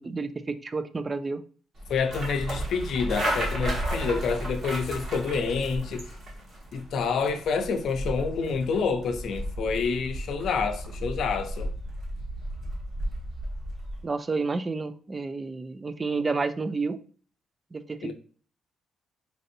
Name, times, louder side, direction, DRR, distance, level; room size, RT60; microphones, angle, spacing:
voice 1, 0.0-1.4 14.0-17.0 17.7-18.1, right 4 dB, 25° right, 0.3 m, -30 dB
sound 1, 1.8-14.0, equal, 55° right, 1.3 m, -34 dB
voice 2, 1.9-6.1 6.7-11.7 18.0-18.1, left 5 dB, 70° left, 0.5 m, -28 dB
4.1 x 2.6 x 2.6 m
cardioid pair, 90°, 0 cm